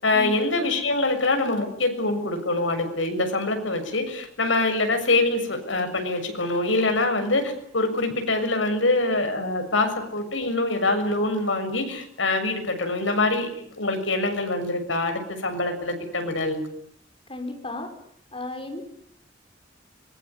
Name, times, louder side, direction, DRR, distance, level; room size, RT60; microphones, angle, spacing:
voice 1, 0.0-13.5 13.8-16.7, left 2 dB, 85° left, 6 dB, 6.9 m, -24 dB
voice 2, 17.3-17.9 18.3-18.8, left 2 dB, 30° left, 4 dB, 5.9 m, -34 dB
25.0 x 22.5 x 9.9 m, 0.68 s
head